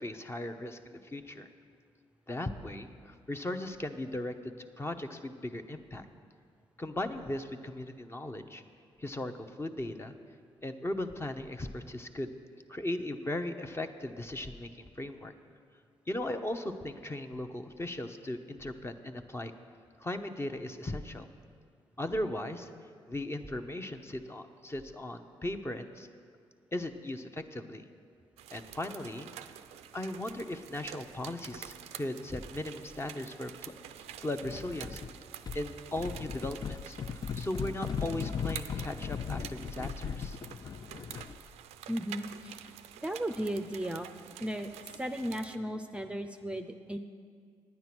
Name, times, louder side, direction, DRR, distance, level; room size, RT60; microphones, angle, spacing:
voice 1, 0.0-1.5 2.3-6.1 6.8-8.6 9.0-9.3 9.6-10.1 10.6-12.3 12.7-14.7 15.0-15.3 16.1-19.5 20.0-21.3 22.0-22.7 23.1-26.1 26.7-27.9 28.5-29.3 29.9-33.7 34.2-35.0 35.5-40.4, left 1 dB, 25° left, 7 dB, 0.8 m, -37 dB
sound 1, 28.4-45.6, right 11 dB, 85° right, 0.4 m, -48 dB
sound 2, 34.4-35.1 35.5-41.5, left 6 dB, 40° left, 0.3 m, -38 dB
voice 2, 41.9-42.7 43.0-44.1 44.4-47.0, equal, 10° right, 6 dB, 0.6 m, -35 dB
9.6 x 9.3 x 6.1 m, 2.1 s
supercardioid pair, 50°, 11 cm